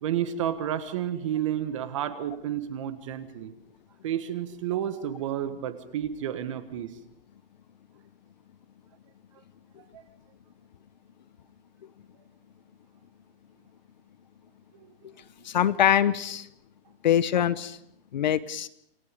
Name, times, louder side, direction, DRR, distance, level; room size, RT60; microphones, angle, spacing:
voice 1, 0.0-3.5 4.0-6.9 9.9-10.0 14.8-14.9, right 10 dB, 30° right, 11 dB, 1.5 m, -31 dB
voice 2, 15.4-16.5 17.0-17.8 18.1-18.7, left 10 dB, 45° left, 14 dB, 0.9 m, -23 dB
28.5 x 18.5 x 5.3 m, 0.71 s
hypercardioid pair, 175°, 30 cm